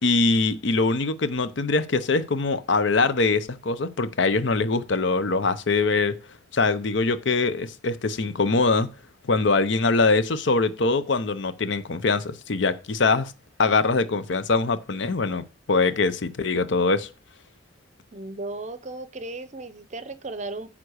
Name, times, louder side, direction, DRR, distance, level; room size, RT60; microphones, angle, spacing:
voice 1, 0.0-6.1 6.5-8.9 9.3-13.3 13.6-17.1, left 3 dB, 65° left, 0.7 m, -23 dB
voice 2, 18.1-20.7, right 2 dB, 35° right, 0.7 m, -35 dB
9.5 x 3.7 x 6.4 m
head